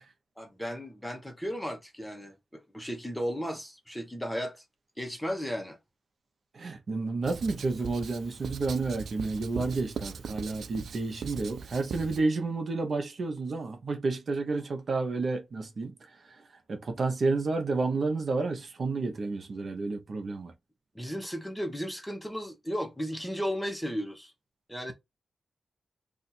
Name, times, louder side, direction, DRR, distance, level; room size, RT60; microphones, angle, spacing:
voice 1, 0.4-4.6 5.0-5.8 20.9-24.3 24.7-24.9, equal, 5° left, 0.9 m, -35 dB
voice 2, 6.5-15.9 16.7-20.5, right 3 dB, 55° right, 0.7 m, -30 dB
Writing, 7.2-12.2, right 6 dB, 85° right, 0.4 m, -40 dB
2.6 x 2.4 x 4.1 m
wide cardioid pair, 100°, 0 cm